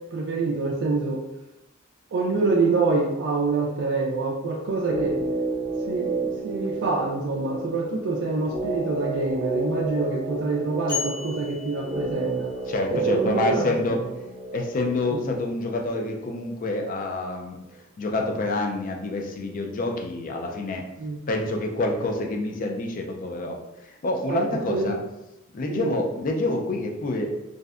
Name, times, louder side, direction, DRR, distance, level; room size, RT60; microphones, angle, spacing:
voice 1, 0.1-1.2 2.1-5.2 5.9-12.5 12.9-14.0 15.1-15.3 21.0-21.2 24.3-24.9 25.7-26.0, right 3 dB, 55° right, -2 dB, 0.3 m, -26 dB
sound 1, 4.8-16.9 17.1-17.2, right 3 dB, 10° right, 0.7 m, -32 dB
sound 2, 10.9-12.7, left 7 dB, 90° left, 1.4 m, -34 dB
voice 2, 12.6-14.0 14.5-17.6 18.0-20.8 21.3-23.6 23.9-25.0 25.5-27.3, left 2 dB, 40° left, 1 dB, 0.3 m, -27 dB
2.6 x 2.1 x 2.4 m, 0.92 s
head